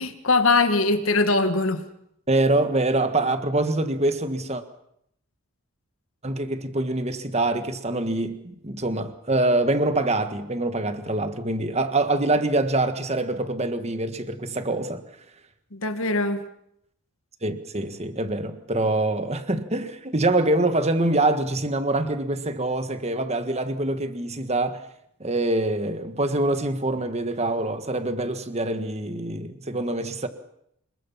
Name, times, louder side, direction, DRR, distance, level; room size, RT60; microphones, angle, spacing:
voice 1, 0.0-1.8 15.7-16.5, left 3 dB, 70° left, 1.9 m, -22 dB
voice 2, 2.3-4.6 6.2-15.0 17.4-24.8 25.2-30.3, right 2 dB, 30° right, 1.7 m, -25 dB
27.0 x 22.0 x 5.8 m
head